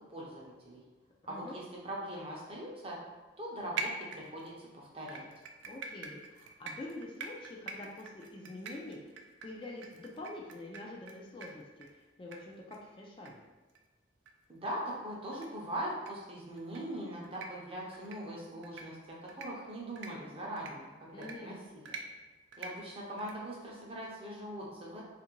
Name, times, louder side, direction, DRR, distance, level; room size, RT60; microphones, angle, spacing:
voice 1, 0.1-0.8 1.3-3.0 3.4-5.2 14.5-22.0 22.6-25.0, right 1 dB, 30° right, -4 dB, 0.6 m, -41 dB
sound 1, 3.8-4.6 5.1-11.1 11.4-11.5 11.8-11.9 12.3-12.4 12.7-12.8 13.3-13.4 13.7-13.8 14.3-14.4 15.3-15.5 15.9-16.1 16.6-16.8 17.2-17.5 17.9-18.2 18.6-18.8 19.3-19.5 20.0-20.1 20.6-20.7 21.2-21.4 21.9-22.0 22.5-22.7 23.2-23.3, right 5 dB, 80° right, 0.3 m, -42 dB
voice 2, 5.7-9.0 9.4-11.6 11.9-13.4 21.1-21.7, left 2 dB, 30° left, -2 dB, 0.3 m, -46 dB
2.6 x 2.5 x 2.9 m, 1.2 s
head